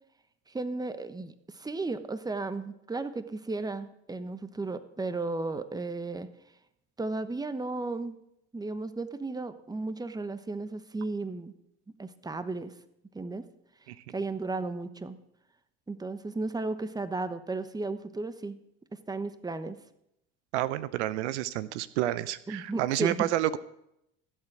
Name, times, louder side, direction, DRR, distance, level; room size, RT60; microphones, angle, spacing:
voice 1, 0.5-6.3 7.0-8.2 8.5-11.5 12.0-12.7 13.1-13.4 14.1-15.2 15.9-18.6 19.1-19.8 22.5-23.3, right 3 dB, 10° right, 12 dB, 1.1 m, -34 dB
voice 2, 20.5-23.6, right 14 dB, 80° right, 16 dB, 0.7 m, -29 dB
16.0 x 7.6 x 6.1 m, 0.80 s
hypercardioid pair, 80°, 34 cm